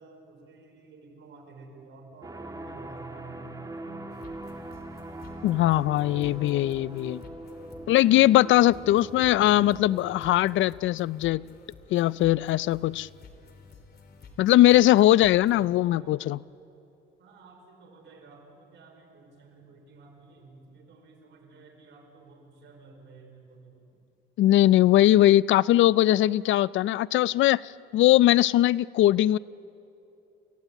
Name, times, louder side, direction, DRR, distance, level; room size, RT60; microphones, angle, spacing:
voice 1, 0.0-4.4 15.5-16.2 17.2-23.8, right 3 dB, 70° right, 2 dB, 5.1 m, -51 dB
sound 1, 2.2-10.3, right 2 dB, 20° right, 1.9 m, -42 dB
sound 2, 4.1-15.7, left 4 dB, 55° left, 3.0 m, -52 dB
voice 2, 5.4-7.2 7.9-11.4 11.9-13.1 14.4-16.4 24.4-29.4, left 14 dB, 75° left, 21 dB, 0.4 m, -20 dB
28.5 x 16.5 x 8.3 m, 2.8 s
cardioid pair, 90°, 20 cm